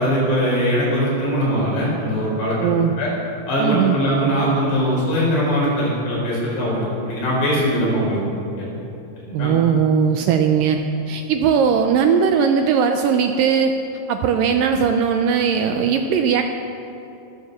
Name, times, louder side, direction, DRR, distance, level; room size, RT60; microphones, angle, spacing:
voice 1, 0.0-2.6 3.0-3.1 3.5-8.2 8.6-8.7 9.3-9.5, equal, 85° left, -5 dB, 6.9 m, -21 dB
voice 2, 2.6-2.9 3.6-4.0 9.3-10.8 11.1-13.7 14.1-16.4, right 7 dB, 85° right, 6 dB, 1.9 m, -18 dB
23.0 x 7.8 x 6.8 m, 2.9 s
omnidirectional pair, 4.7 m